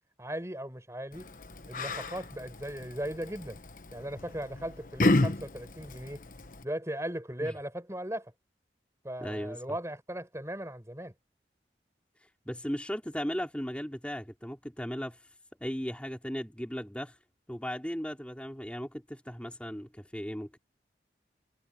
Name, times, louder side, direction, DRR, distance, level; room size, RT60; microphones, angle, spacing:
voice 1, 0.2-1.3 1.7-3.6 3.9-6.2 6.6-8.3 9.0-11.1, right 1 dB, 15° right, 5.7 m, -37 dB
Yell, 1.1-6.6, left 2 dB, 50° left, 1.3 m, -32 dB
voice 2, 9.2-9.6 12.2-15.3 15.6-17.2 17.5-20.6, equal, 5° left, 4.4 m, -37 dB
head